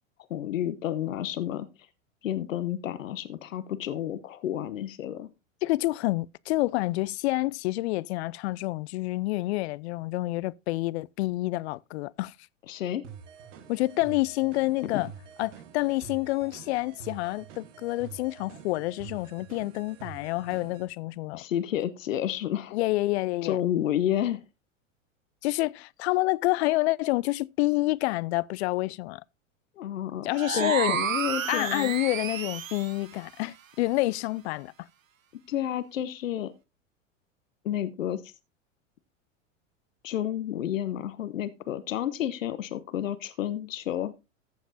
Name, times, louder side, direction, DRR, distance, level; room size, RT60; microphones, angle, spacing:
voice 1, 0.3-1.7 2.2-5.3 12.7-13.0 14.8-15.0 21.3-22.8 23.4-24.4 29.8-32.0 35.5-36.5 37.6-38.3 40.0-44.1, left 11 dB, 80° left, 0.9 m, -31 dB
voice 2, 5.6-12.3 13.7-15.1 15.4-21.4 22.7-23.6 25.4-29.2 30.2-31.0 31.5-34.7, left 19 dB, 55° left, 0.5 m, -28 dB
sound 1, 13.0-20.9, right 7 dB, 65° right, 1.6 m, -47 dB
sound 2, 30.3-33.0, right 8 dB, 85° right, 1.2 m, -31 dB
14.5 x 7.2 x 2.6 m
hypercardioid pair, 90°, 39 cm